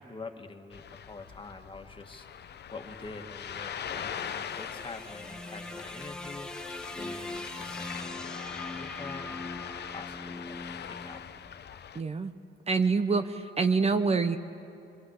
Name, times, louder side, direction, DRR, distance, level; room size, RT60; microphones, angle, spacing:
voice 1, 0.0-6.7 7.0-10.6 10.8-11.2, left 3 dB, 25° left, 5 dB, 1.9 m, -46 dB
Ocean, 0.7-12.0, left 8 dB, 55° left, 0.9 m, -42 dB
sound 1, 3.5-11.8, left 2 dB, 5° left, 1.1 m, -42 dB
voice 2, 11.9-12.3 12.7-14.4, right 4 dB, 30° right, 8 dB, 0.9 m, -26 dB
24.0 x 23.5 x 8.2 m, 2.7 s
cardioid pair, 90°, 20 cm